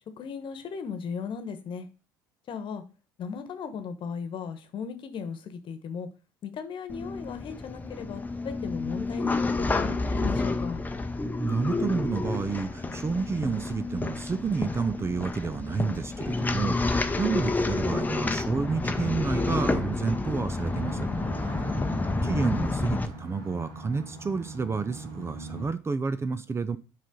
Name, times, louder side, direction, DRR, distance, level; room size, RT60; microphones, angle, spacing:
voice 1, 0.2-1.9 2.5-2.8 3.2-6.1 6.4-10.8 22.2-22.7, left 6 dB, 45° left, 1.2 m, -37 dB
sound 1, 6.9-23.1, left 3 dB, 15° left, 0.8 m, -29 dB
voice 2, 11.4-21.1 22.2-26.8, right 4 dB, 25° right, 0.6 m, -30 dB
sound 2, 11.9-25.7, right 2 dB, 85° right, 3.1 m, -45 dB
7.4 x 5.1 x 3.8 m
hypercardioid pair, 70°, 11 cm